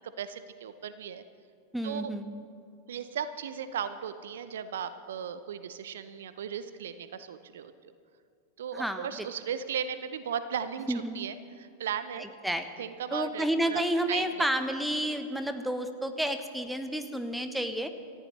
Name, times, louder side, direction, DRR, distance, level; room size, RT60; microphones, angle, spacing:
voice 1, 0.2-1.2 1.8-2.1 2.9-7.9 8.6-12.3 12.8-13.5 13.7-13.8 14.1-14.5, right 8 dB, 60° right, 13 dB, 0.7 m, -36 dB
voice 2, 1.7-2.4 8.7-9.1 10.9-11.2 12.2-12.6 13.1-17.9, right 1 dB, 5° right, 9 dB, 1.1 m, -30 dB
27.5 x 14.5 x 3.3 m, 2.4 s
figure-of-eight pair, 90°, 0 cm